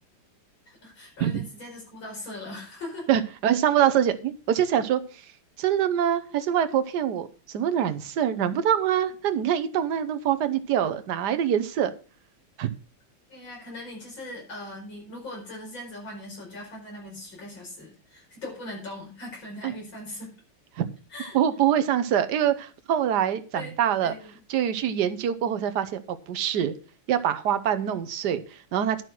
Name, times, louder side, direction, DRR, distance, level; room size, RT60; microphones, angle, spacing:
voice 1, 0.7-3.1 13.3-20.3 21.1-21.4 23.5-24.3, left 1 dB, 85° left, -1 dB, 5.9 m, -40 dB
voice 2, 3.1-5.3 5.6-11.9 12.6-12.7 19.6-19.7 20.7-20.9 21.3-24.1 24.5-26.7 27.1-29.0, right 9 dB, 65° right, 10 dB, 1.4 m, -25 dB
11.0 x 6.2 x 6.1 m, 0.37 s
omnidirectional pair, 2.1 m